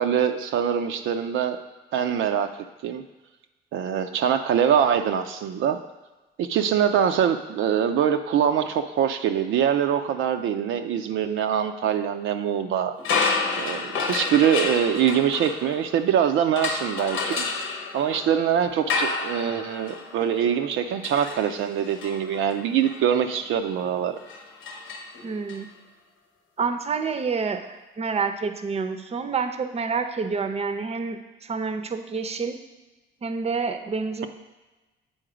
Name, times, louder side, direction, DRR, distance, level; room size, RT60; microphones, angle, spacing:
voice 1, 0.0-1.6 1.9-2.5 2.8-3.0 3.7-5.8 6.4-12.9 13.6-17.5 17.9-24.2, right 8 dB, 80° right, 6 dB, 0.5 m, -23 dB
sound 1, 13.0-16.1 16.6-25.6, left 4 dB, 85° left, 1.0 m, -30 dB
voice 2, 25.2-25.7 26.6-32.6 33.2-34.3, right 5 dB, 30° right, 7 dB, 0.6 m, -28 dB
7.9 x 3.8 x 5.0 m, 1.1 s
cardioid pair, 90°, 20 cm